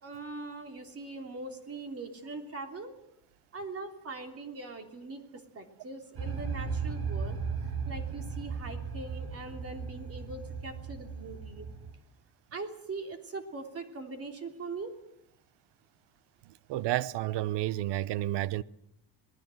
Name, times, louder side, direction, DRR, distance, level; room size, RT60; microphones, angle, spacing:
voice 1, 0.0-2.9 3.5-7.4 7.9-11.7 12.5-14.9, right 3 dB, 35° right, 3.2 m, -41 dB
sound 1, 6.2-11.9, right 5 dB, 65° right, 5.7 m, -36 dB
voice 2, 16.7-18.6, right 14 dB, 90° right, 0.9 m, -30 dB
26.5 x 19.0 x 7.7 m
cardioid pair, 155°, 40 cm